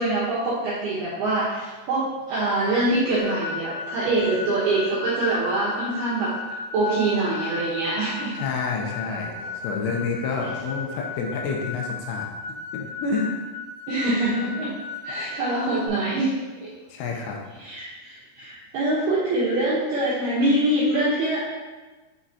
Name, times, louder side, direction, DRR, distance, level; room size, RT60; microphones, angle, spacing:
voice 1, 0.0-8.3 9.3-9.5 13.9-14.7 15.0-16.3 16.6-16.7 17.6-21.4, right 2 dB, 75° right, -8 dB, 2.3 m, -24 dB
sound 1, 3.2-15.9, left 4 dB, 55° left, 3.1 m, -35 dB
voice 2, 8.3-9.3 9.6-12.3 12.7-13.4 16.9-17.4, left 4 dB, 80° left, 0 dB, 3.1 m, -28 dB
8.8 x 4.3 x 2.7 m, 1.2 s
omnidirectional pair, 5.9 m